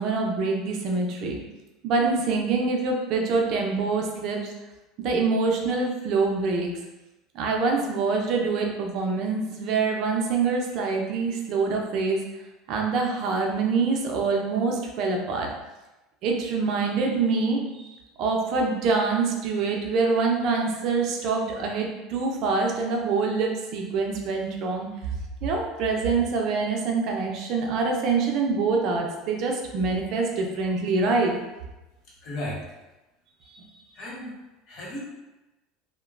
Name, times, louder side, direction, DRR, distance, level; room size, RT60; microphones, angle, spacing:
voice 1, 0.0-1.4 1.8-4.4 5.0-6.7 7.3-12.2 12.7-15.5 16.2-24.9 25.4-31.3 33.5-33.7, right 4 dB, 55° right, 1 dB, 0.5 m, -25 dB
voice 2, 32.2-32.8 33.9-34.3 34.7-35.0, left 1 dB, 60° left, -5 dB, 1.0 m, -34 dB
2.9 x 2.1 x 2.4 m, 1.0 s
supercardioid pair, 120°, 0 cm